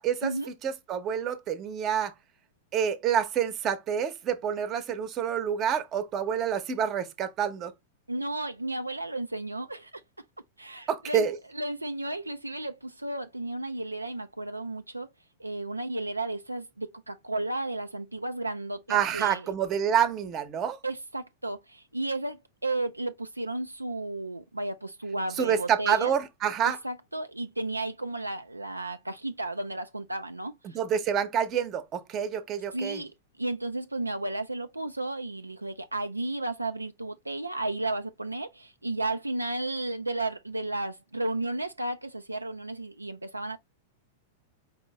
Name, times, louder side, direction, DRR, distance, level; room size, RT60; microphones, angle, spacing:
voice 1, 0.0-0.3 0.6-2.1 2.7-7.7 10.9-11.4 18.9-20.8 25.4-26.8 30.7-33.0, right 8 dB, 30° right, 0.8 m, -27 dB
voice 2, 8.1-10.0 10.6-11.3 11.5-15.1 15.4-19.5 20.8-26.1 26.6-30.8 32.7-33.1 33.4-43.6, right 2 dB, 85° right, 0.3 m, -33 dB
5.1 x 2.7 x 3.2 m
figure-of-eight pair, 95°, 0 cm